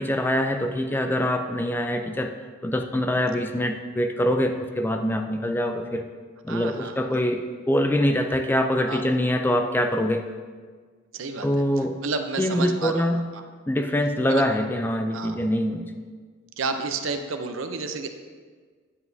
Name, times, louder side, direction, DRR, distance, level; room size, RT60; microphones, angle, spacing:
voice 1, 0.0-2.3 2.6-6.1 6.4-10.3 11.4-12.0 12.4-13.3 13.7-15.9, left 1 dB, 10° left, 6 dB, 0.3 m, -24 dB
voice 2, 6.5-6.9 8.9-9.0 11.1-11.6 12.0-13.1 13.3-13.4 14.3-14.5 15.1-15.3 16.6-18.1, right 4 dB, 80° right, 6 dB, 0.6 m, -30 dB
9.5 x 7.8 x 2.7 m, 1.5 s
head